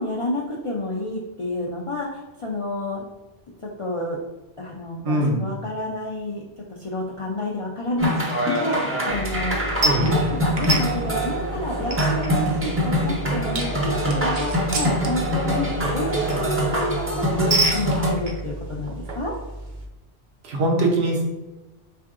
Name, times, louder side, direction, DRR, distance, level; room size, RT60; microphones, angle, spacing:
voice 1, 0.0-3.0 3.6-4.2 4.6-9.7 10.0-19.3, left 1 dB, 55° left, -4 dB, 0.3 m, -29 dB
voice 2, 5.0-5.4 9.8-10.1 20.4-21.2, right 2 dB, 85° right, 0 dB, 1.0 m, -21 dB
sound 1, 8.0-18.1, equal, 15° right, 0.4 m, -24 dB
sound 2, 9.1-19.9, right 2 dB, 55° right, 0.7 m, -30 dB
3.6 x 3.3 x 2.4 m, 1.1 s
omnidirectional pair, 1.1 m